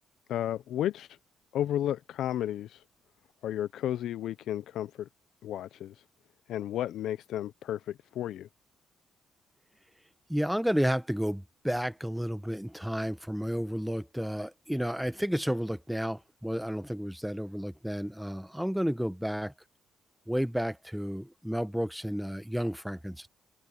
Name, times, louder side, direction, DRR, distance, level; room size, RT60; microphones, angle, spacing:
voice 1, 0.3-1.1 1.5-2.8 3.4-5.1 5.4-6.0 6.5-8.5, left 11 dB, 80° left, 0.5 m, -33 dB
voice 2, 10.3-19.5 20.3-23.3, equal, ahead, 0.8 m, -31 dB
cardioid pair, 90°, 0 cm